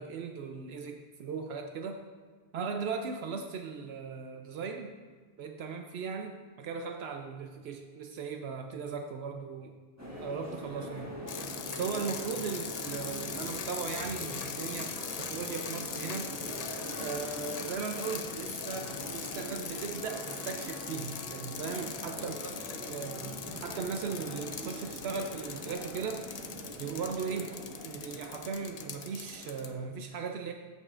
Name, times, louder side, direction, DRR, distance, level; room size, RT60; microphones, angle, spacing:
voice 1, 0.0-2.0 2.5-4.9 5.4-9.7 10.2-11.1 11.7-16.3 17.0-26.3 26.8-30.5, right 5 dB, 75° right, 5 dB, 0.8 m, -38 dB
sound 1, 10.0-29.9, equal, 15° right, 1.4 m, -43 dB
sound 2, 11.3-29.7, left 6 dB, 50° left, 0.5 m, -41 dB
14.5 x 5.4 x 2.5 m, 1.5 s
omnidirectional pair, 1.1 m